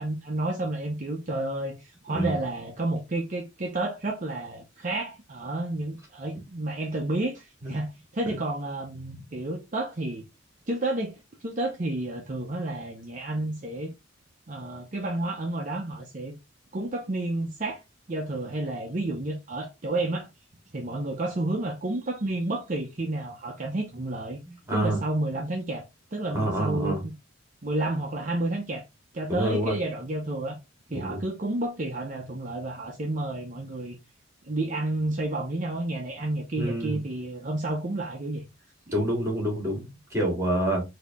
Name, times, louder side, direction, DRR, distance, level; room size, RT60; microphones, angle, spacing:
voice 1, 0.0-10.2 10.7-13.9 14.5-16.3 16.7-17.8 18.1-20.3 20.7-24.4 24.7-27.0 27.6-28.8 29.1-30.6 30.9-34.0 34.4-38.5, right 2 dB, 40° right, 0.7 m, -30 dB
voice 2, 24.4-25.0 26.3-27.0 29.3-29.8 30.9-31.2 36.6-37.0 38.9-40.8, right 1 dB, 15° right, 2.0 m, -27 dB
4.1 x 2.8 x 3.5 m
head